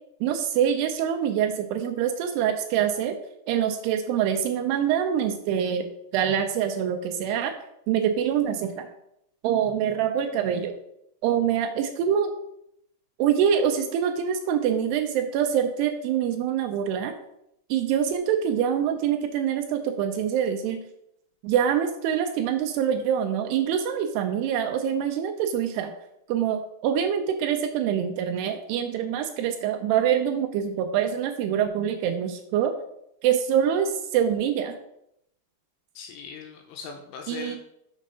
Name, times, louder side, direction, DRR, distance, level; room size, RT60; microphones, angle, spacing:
voice 1, 0.2-3.2 3.5-5.9 6.1-7.5 7.9-8.9 9.4-10.8 11.2-12.3 13.2-17.1 17.7-20.8 21.4-25.9 26.3-32.7 33.2-34.8 37.3-37.6, right 8 dB, 80° right, 6 dB, 2.6 m, -25 dB
voice 2, 36.0-37.6, left 6 dB, 80° left, 3 dB, 2.6 m, -39 dB
6.3 x 5.1 x 5.4 m, 0.78 s
omnidirectional pair, 4.9 m